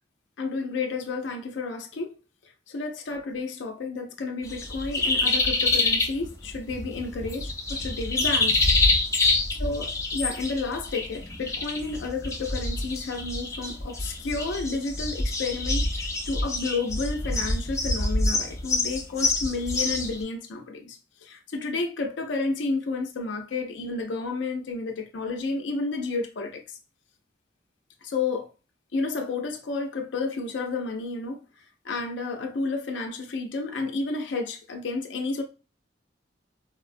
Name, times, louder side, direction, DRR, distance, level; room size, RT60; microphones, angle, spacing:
voice 1, 0.4-2.1 2.7-8.6 9.6-26.8 28.0-28.5 28.9-31.4 31.8-35.4, left 3 dB, 80° left, 0.5 m, -31 dB
sound 1, 4.4-20.2, left 2 dB, 15° left, 0.5 m, -26 dB
4.2 x 2.0 x 2.5 m
head